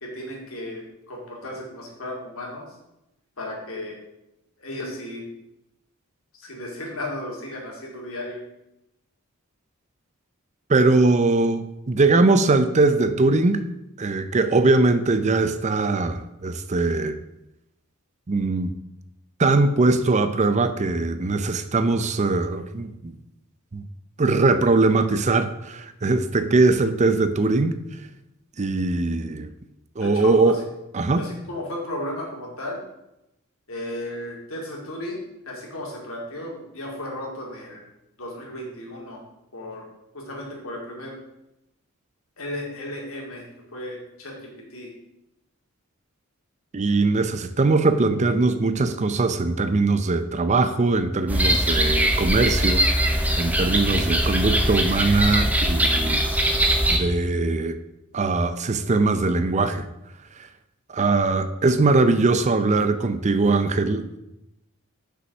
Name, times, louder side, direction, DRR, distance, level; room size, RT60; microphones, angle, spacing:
voice 1, 0.0-2.6 3.4-4.0 4.6-5.2 6.4-8.4 30.0-30.5 31.1-32.8 33.7-35.2 35.4-37.8 38.2-39.2 39.5-39.9 40.1-41.2 42.4-43.4 43.7-44.9, left 1 dB, 75° left, -1 dB, 2.5 m, -34 dB
voice 2, 10.7-13.7 14.0-17.2 18.3-18.7 19.4-23.1 23.7-23.8 24.2-27.8 28.6-29.5 30.0-30.6 30.9-31.3 46.7-56.2 56.9-57.8 58.1-59.8 60.9-64.2, right 3 dB, 35° right, 11 dB, 0.5 m, -21 dB
sound 1, 51.3-57.0, right 1 dB, 5° right, 0.9 m, -21 dB
6.3 x 5.4 x 6.5 m, 0.88 s
head